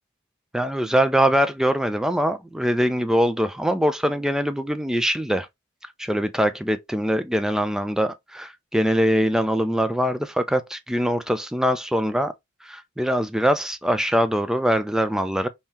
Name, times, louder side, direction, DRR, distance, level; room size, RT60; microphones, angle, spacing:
voice 1, 0.5-5.5 6.0-12.3 12.6-15.5, equal, 5° right, 0.3 m, -23 dB
3.7 x 2.7 x 2.9 m
head